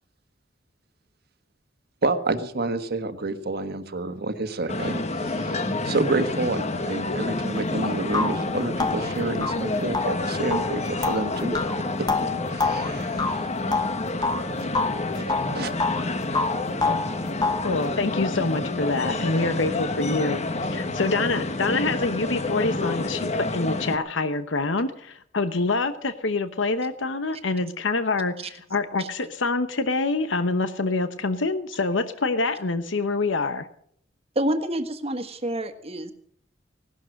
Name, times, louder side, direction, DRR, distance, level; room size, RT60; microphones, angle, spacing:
voice 1, 2.0-11.5 12.5-13.4 14.4-14.7 15.1-15.2 15.5-15.7, right 2 dB, 55° right, 1.4 m, -29 dB
sound 1, 4.7-24.0, left 2 dB, 35° left, 1.2 m, -29 dB
sound 2, 7.6-7.7 8.1-14.4 14.7-16.1 16.3-17.7, left 4 dB, 20° left, 0.9 m, -27 dB
voice 2, 17.6-33.7, left 3 dB, 85° left, 1.0 m, -26 dB
voice 3, 34.3-36.1, right 1 dB, 35° right, 1.6 m, -28 dB
18.0 x 12.5 x 6.5 m
head